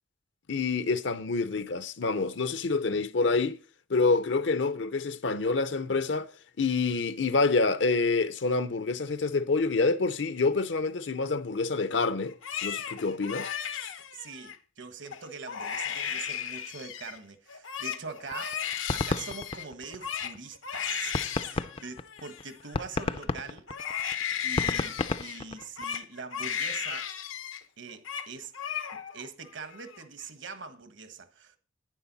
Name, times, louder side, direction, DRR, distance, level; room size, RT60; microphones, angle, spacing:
voice 1, 0.5-3.6 3.9-6.3 6.6-12.3 12.6-13.5, left 3 dB, 70° left, 0.7 m, -27 dB
Crying sobbing, 12.3-14.6 15.1-15.2 15.5-17.2 17.5-23.3 23.7-27.6 27.9-28.3 28.5-29.3 29.6-30.2, left 8 dB, 90° left, 1.0 m, -35 dB
voice 2, 14.1-23.7 24.4-27.1 27.8-28.5 29.1-31.6, right 5 dB, 70° right, 1.4 m, -43 dB
sound 1, 18.3-20.4 20.8-20.9 21.1-26.0, left 3 dB, 30° left, 0.4 m, -32 dB
11.0 x 9.8 x 4.1 m
head